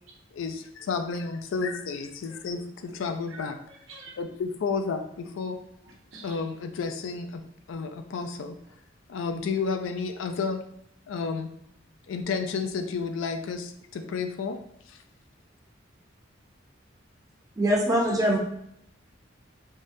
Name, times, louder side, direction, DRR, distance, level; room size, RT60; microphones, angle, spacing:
voice 1, 0.3-3.6 4.2-5.6 6.2-7.4 7.7-8.6 9.1-10.6 11.1-11.5 12.1-14.6 14.9-15.0, left 5 dB, 80° left, 7 dB, 0.3 m, -31 dB
voice 2, 2.3-2.6 2.9-4.1 5.8-6.4, right 3 dB, 80° right, -2 dB, 0.8 m, -48 dB
voice 3, 17.6-18.4, equal, 20° right, -2 dB, 0.5 m, -22 dB
3.6 x 2.1 x 2.6 m, 0.73 s
head